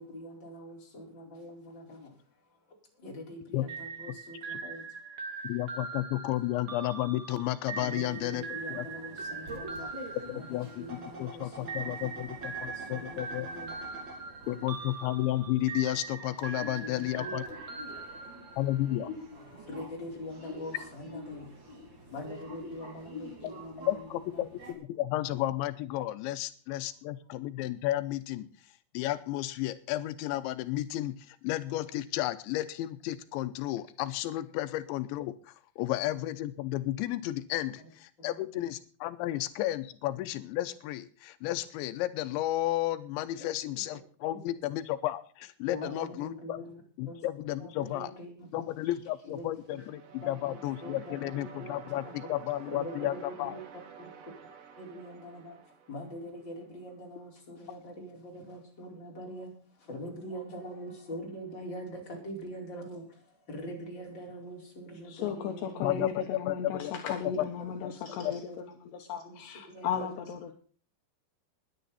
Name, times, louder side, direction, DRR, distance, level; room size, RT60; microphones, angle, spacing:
voice 1, 0.0-2.2 2.5-2.6 3.0-5.0 7.8-14.9 16.6-19.0 19.4-21.5 22.1-24.5 35.9-36.0 37.8-37.9 38.2-38.6 43.4-44.0 44.3-44.6 45.7-47.2 47.6-49.8 50.2-52.3 52.7-53.6 54.0-54.1 54.8-66.1 67.4-68.7 69.2-70.5, equal, 25° left, 5.1 m, -44 dB
sound 1, 3.7-11.1 11.7-18.9, right 4 dB, 45° right, 1.9 m, -41 dB
voice 2, 5.4-8.9 10.3-13.5 14.5-17.4 18.6-19.1 23.9-46.6 47.0-48.1 48.5-53.6 65.8-66.9 67.8-67.9 68.2-68.3, left 15 dB, 90° left, 3.2 m, -33 dB
sound 2, 7.9-24.7, right 1 dB, 30° right, 3.1 m, -47 dB
sound 3, 49.6-56.6, right 7 dB, 75° right, 4.2 m, -50 dB
voice 3, 65.0-68.5 68.8-70.5, left 7 dB, 75° left, 3.1 m, -36 dB
21.0 x 10.0 x 4.2 m
omnidirectional pair, 5.1 m